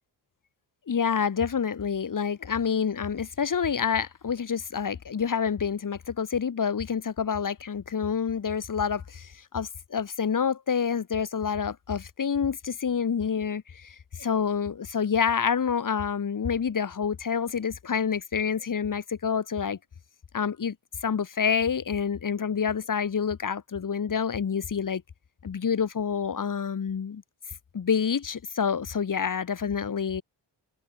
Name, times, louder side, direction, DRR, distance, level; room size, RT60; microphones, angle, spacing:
voice 1, 0.9-19.8 20.3-20.8 21.0-25.0 25.4-27.2 27.7-30.2, left 6 dB, 45° left, 7.2 m, -28 dB
wide cardioid pair, 175°, 44 cm